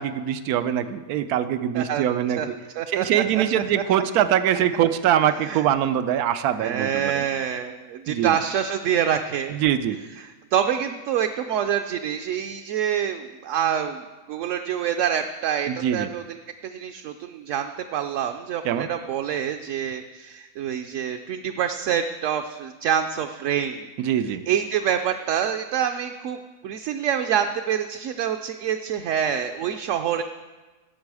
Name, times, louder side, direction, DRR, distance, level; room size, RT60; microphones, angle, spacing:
voice 1, 0.0-2.4 2.9-7.2 8.1-8.4 9.5-10.0 15.7-16.1 18.6-18.9 24.0-24.4, right 10 dB, 90° right, 12 dB, 1.1 m, -23 dB
voice 2, 1.7-2.1 2.4-2.5 2.8-3.6 3.9-4.0 5.4-5.6 6.6-9.6 10.2-14.0 14.3-23.9 24.2-30.2, right 9 dB, 65° right, 6 dB, 0.9 m, -26 dB
17.5 x 6.7 x 4.8 m, 1.3 s
omnidirectional pair, 1.6 m